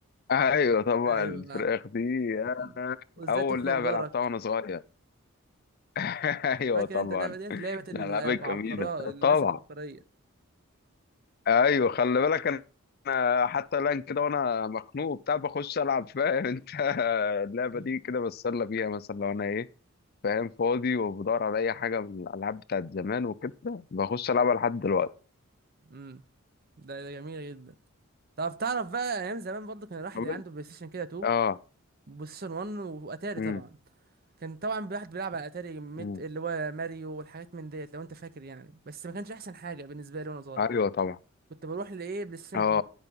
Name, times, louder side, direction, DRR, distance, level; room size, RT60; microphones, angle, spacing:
voice 1, 0.3-3.0 3.3-4.8 6.0-7.7 7.9-9.6 11.5-12.6 13.0-19.7 20.2-25.1 30.1-30.4 31.2-31.6 33.4-33.6 36.0-36.2 40.6-41.2 42.5-42.8, left 5 dB, 45° left, 0.4 m, -28 dB
voice 2, 1.0-1.7 2.6-2.8 3.2-4.1 6.7-10.0 17.7-18.0 25.9-26.2 26.8-27.7 28.4-31.3 32.1-33.8 34.4-40.7 41.6-42.8, right 4 dB, 45° right, 0.6 m, -37 dB
9.6 x 6.0 x 5.3 m
head